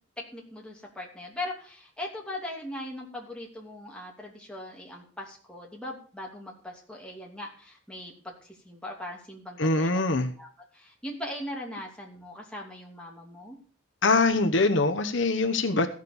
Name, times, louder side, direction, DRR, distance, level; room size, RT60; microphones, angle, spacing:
voice 1, 0.2-10.0 10.4-10.5 10.7-13.6, left 1 dB, 5° left, -2 dB, 2.8 m, -40 dB
voice 2, 9.6-10.3 14.0-15.9, left 3 dB, 65° left, 8 dB, 1.0 m, -23 dB
14.5 x 6.6 x 6.8 m, 0.41 s
head